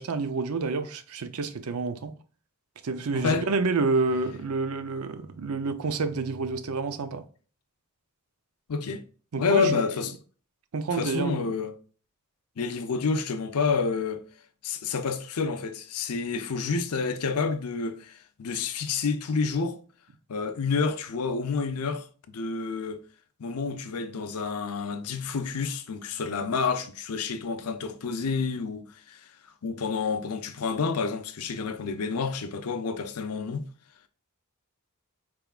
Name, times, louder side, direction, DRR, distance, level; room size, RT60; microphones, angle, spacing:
voice 1, 0.0-2.1 2.8-7.2 9.3-9.8 10.7-11.5, right 4 dB, 75° right, 0.5 m, -28 dB
voice 2, 3.1-3.5 8.7-9.0 9.4-10.1 10.9-11.7 12.6-14.2 14.6-19.8 20.3-23.0 23.4-29.2 29.6-33.6, left 4 dB, 90° left, 0.6 m, -29 dB
4.6 x 3.5 x 2.4 m
head